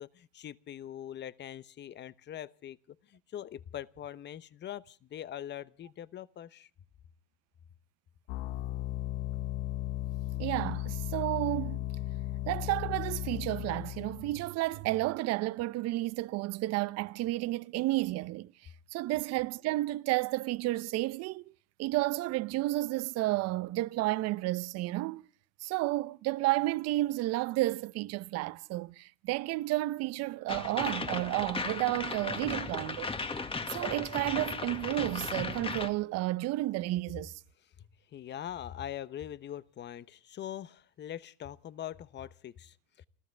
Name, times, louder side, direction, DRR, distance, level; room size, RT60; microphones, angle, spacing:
voice 1, 0.0-6.7 37.8-43.1, left 11 dB, 35° left, 1.0 m, -43 dB
sound 1, 8.3-14.5, left 15 dB, 80° left, 1.3 m, -36 dB
voice 2, 10.4-11.8 12.5-18.5 18.9-21.4 21.8-25.2 25.6-33.1 33.7-37.4, right 18 dB, 55° right, 0.8 m, -31 dB
sound 2, 30.5-35.9, left 4 dB, 20° left, 1.9 m, -36 dB
28.5 x 14.5 x 3.4 m
supercardioid pair, 110°, 30 cm